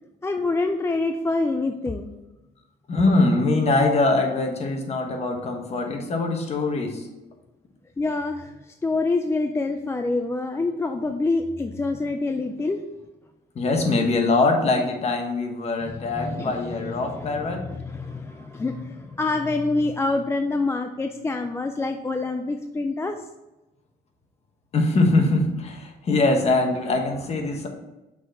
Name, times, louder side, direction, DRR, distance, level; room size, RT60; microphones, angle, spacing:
voice 1, 0.2-2.1 8.0-12.8 15.8-23.2, left 3 dB, 15° left, 5 dB, 0.4 m, -26 dB
voice 2, 2.9-7.1 13.5-17.6 24.7-27.7, left 2 dB, 40° left, 3 dB, 1.2 m, -22 dB
6.0 x 4.0 x 4.4 m, 1.0 s
cardioid pair, 110°, 17 cm